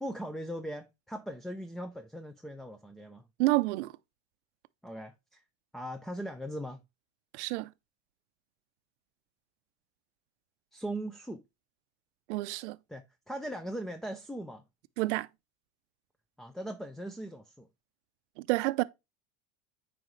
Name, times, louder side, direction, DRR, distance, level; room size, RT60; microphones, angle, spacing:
voice 1, 0.0-3.2 4.8-5.4 5.7-6.8 10.7-11.4 12.9-14.6 16.4-17.7, right 1 dB, ahead, 0.4 m, -39 dB
voice 2, 3.4-3.9 7.3-7.7 12.3-12.8 15.0-15.3 18.5-18.8, right 21 dB, 80° right, 0.5 m, -28 dB
8.9 x 4.9 x 3.1 m
supercardioid pair, 120°, 34 cm